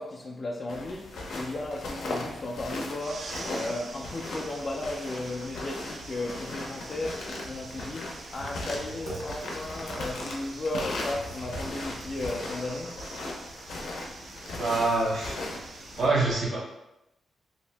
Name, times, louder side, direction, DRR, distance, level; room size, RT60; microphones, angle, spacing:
voice 1, 0.0-13.0, left 2 dB, 40° left, -2 dB, 0.3 m, -35 dB
sound 1, 0.7-16.1, left 2 dB, 75° left, 0.6 m, -38 dB
sound 2, 3.0-16.0, right 3 dB, 45° right, 0.3 m, -46 dB
Computer keyboard, 7.2-12.8, right 2 dB, 90° right, 1.0 m, -45 dB
voice 2, 14.5-15.4 16.0-16.6, right 3 dB, 70° right, -5 dB, 0.9 m, -25 dB
2.7 x 2.5 x 3.3 m, 0.90 s
wide cardioid pair, 155°, 0 cm